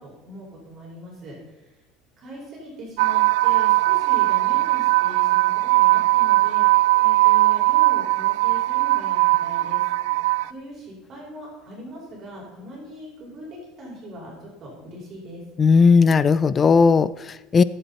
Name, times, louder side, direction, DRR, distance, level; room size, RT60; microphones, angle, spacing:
voice 1, 0.0-1.4 2.2-9.8 10.5-15.4, equal, 40° right, -3 dB, 5.6 m, -40 dB
sound 1, 3.0-10.5, right 20 dB, 85° right, 0.3 m, -19 dB
voice 2, 15.6-17.6, left 5 dB, 25° left, 17 dB, 0.4 m, -16 dB
20.5 x 8.0 x 4.3 m, 1.0 s
cardioid pair, 130°, 0 cm